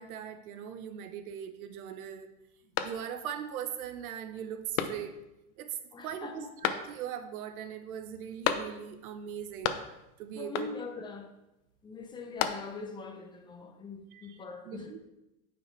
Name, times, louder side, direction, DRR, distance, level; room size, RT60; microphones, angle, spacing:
voice 1, 0.0-2.3 2.8-5.2 5.6-9.8 10.2-10.7 14.1-14.4 14.7-15.0, right 9 dB, 85° right, 1.1 m, -40 dB
sound 1, 2.7-3.4 3.9-4.0 4.7-5.4 6.6-7.3 8.4-9.1 9.3-10.1 10.5-11.0 12.0-13.0, left 9 dB, 75° left, 0.9 m, -34 dB
voice 2, 5.9-6.5 10.4-11.3 11.8-14.9, left 4 dB, 10° left, 0.7 m, -42 dB
9.3 x 5.4 x 4.6 m
supercardioid pair, 135°, 42 cm